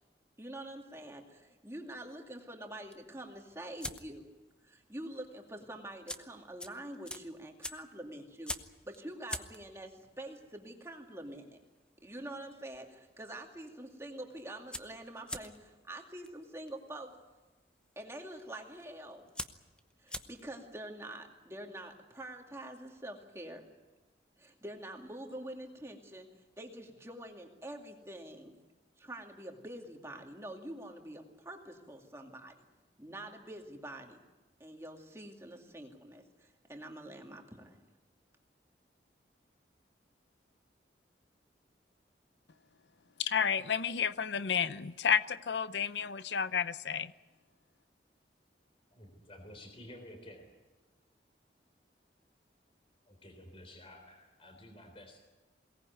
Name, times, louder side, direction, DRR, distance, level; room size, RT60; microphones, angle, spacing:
voice 1, 0.4-4.3 4.6-8.5 8.8-11.6 12.0-17.1 18.0-19.3 20.0-23.6 24.4-26.3 26.6-28.6 29.0-32.7 33.0-34.2 34.6-37.8, right 1 dB, 15° right, 2 dB, 2.3 m, -46 dB
sound 1, 2.8-4.4 4.7-5.0 5.2-5.3 5.9-12.8 13.1-13.6 13.9-14.0 14.2-20.7, left 1 dB, 5° left, 0.8 m, -45 dB
voice 2, 43.2-47.1, left 7 dB, 75° left, 15 dB, 0.7 m, -31 dB
voice 3, 48.9-50.5 53.1-55.2, left 1 dB, 30° left, 5 dB, 3.7 m, -52 dB
22.5 x 18.5 x 9.4 m, 1.2 s
head